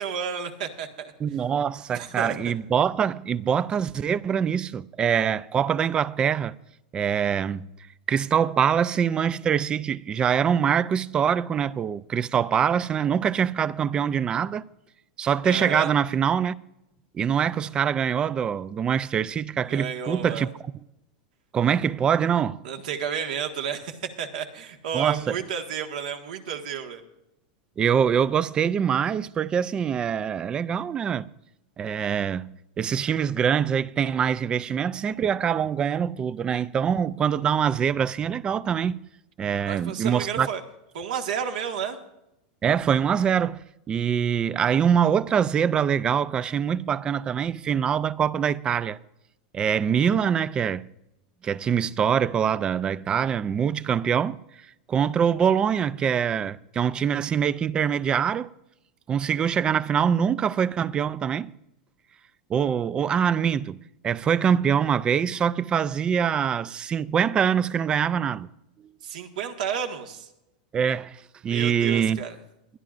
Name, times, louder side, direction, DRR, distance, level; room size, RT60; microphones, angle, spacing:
voice 1, 0.0-1.1 1.9-2.5 15.4-15.9 19.6-20.5 22.6-27.0 39.6-40.6 40.9-42.0 69.0-70.3 71.4-72.4, right 7 dB, 75° right, 1.6 m, -31 dB
voice 2, 1.2-6.5 6.9-7.7 8.1-14.6 15.2-16.6 17.1-20.5 21.5-22.6 24.9-25.4 27.8-31.3 31.8-39.0 39.4-40.5 42.6-43.6 43.9-49.0 49.5-50.9 51.4-54.4 54.9-58.5 59.1-61.5 62.5-63.8 64.0-68.5 70.7-71.2 71.4-72.2, right 8 dB, 20° right, 0.3 m, -24 dB
22.0 x 11.0 x 2.5 m
supercardioid pair, 145°, 4 cm